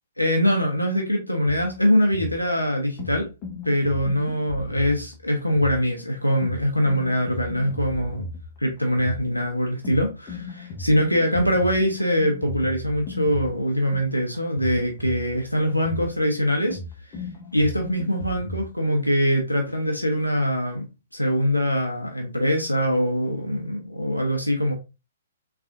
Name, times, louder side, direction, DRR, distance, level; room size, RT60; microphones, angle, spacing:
voice 1, 0.2-3.3 3.6-8.2 8.6-16.8 17.1-17.2 17.5-20.9 21.1-24.7, equal, 90° left, 0.7 m, -23 dB
sound 1, 1.5-18.7, left 1 dB, 25° left, 0.9 m, -36 dB
3.7 x 3.3 x 2.4 m
figure-of-eight pair, 120°, 0 cm